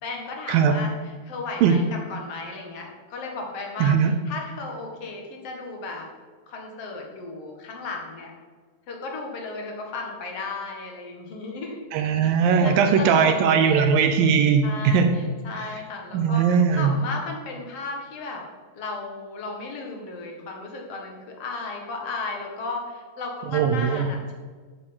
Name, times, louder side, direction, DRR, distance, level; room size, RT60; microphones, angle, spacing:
voice 1, 0.0-6.1 6.5-8.3 8.9-11.8 12.2-12.3 12.6-13.9 14.6-18.4 18.7-24.3, left 3 dB, 45° left, 0 dB, 2.4 m, -35 dB
voice 2, 3.8-4.1 11.9-15.1 15.5-15.7 16.1-17.0 23.5-24.1, right 6 dB, 75° right, 7 dB, 2.3 m, -19 dB
8.9 x 8.1 x 7.9 m, 1.5 s
omnidirectional pair, 4.4 m